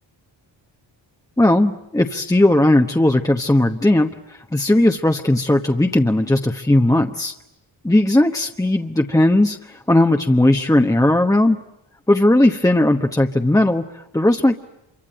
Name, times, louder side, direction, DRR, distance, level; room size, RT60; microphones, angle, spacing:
voice 1, 1.4-7.3 7.8-11.6 12.1-14.5, left 1 dB, 5° left, 4 dB, 1.1 m, -17 dB
26.5 x 24.5 x 9.0 m, 0.87 s
cardioid pair, 85°, 47 cm